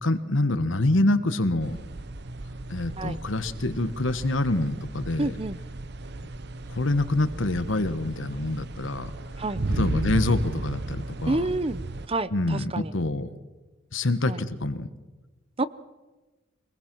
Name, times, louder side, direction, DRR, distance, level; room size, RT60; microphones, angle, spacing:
voice 1, 0.0-1.8 2.7-5.3 6.7-9.1 9.8-11.4 12.3-13.3 13.9-14.9, left 2 dB, 80° left, 12 dB, 1.3 m, -26 dB
sound 1, 1.6-12.1, right 2 dB, 60° right, 0.9 m, -34 dB
voice 2, 5.2-5.6 9.4-9.6 11.3-12.9 14.3-14.4 15.6-15.7, right 2 dB, 30° right, 16 dB, 0.7 m, -29 dB
24.5 x 19.5 x 6.1 m, 1.2 s
head